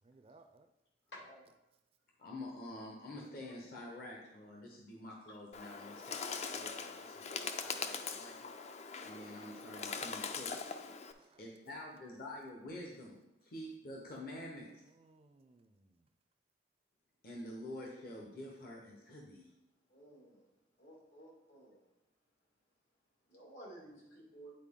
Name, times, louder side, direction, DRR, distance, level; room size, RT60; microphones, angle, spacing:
voice 1, 0.0-0.7 11.2-11.5 14.8-16.1, right 3 dB, 30° right, 8 dB, 0.4 m, -64 dB
voice 2, 1.1-1.4 19.9-20.4 20.8-21.8 23.3-24.5, right 1 dB, 80° left, -4 dB, 2.4 m, -54 dB
voice 3, 2.2-8.4 9.0-10.7 11.4-14.7 17.2-19.5, left 1 dB, 55° left, -1 dB, 1.0 m, -48 dB
Bird, 5.5-11.1, left 5 dB, 35° left, 0.4 m, -42 dB
9.1 x 4.3 x 3.7 m, 0.93 s
head